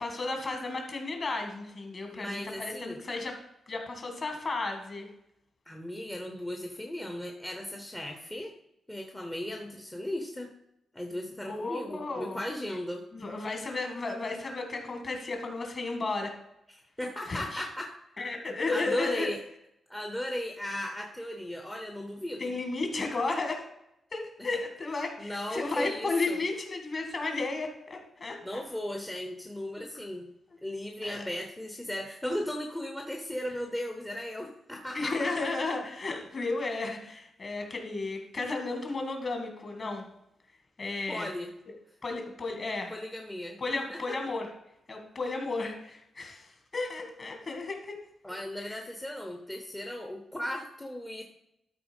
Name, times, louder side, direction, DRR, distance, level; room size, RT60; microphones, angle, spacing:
voice 1, 0.0-3.3 3.7-5.1 11.5-12.4 13.1-16.3 17.3-17.6 18.2-19.3 22.4-23.6 24.1-28.6 29.8-30.0 31.0-31.3 34.9-40.1 40.8-41.3 42.0-42.9 43.6-44.5 44.9-48.0 48.6-48.8, left 3 dB, 35° left, 4 dB, 2.0 m, -33 dB
voice 2, 2.1-3.0 5.7-8.6 8.9-10.5 10.9-13.0 17.0-17.9 18.7-19.4 19.9-22.5 24.4-24.5 25.2-26.4 28.4-30.3 30.6-35.5 41.1-41.5 42.9-43.6 43.9-44.0 48.2-51.2, left 1 dB, 10° left, 3 dB, 0.8 m, -36 dB
12.5 x 4.3 x 5.3 m, 0.82 s
wide cardioid pair, 140°, 0 cm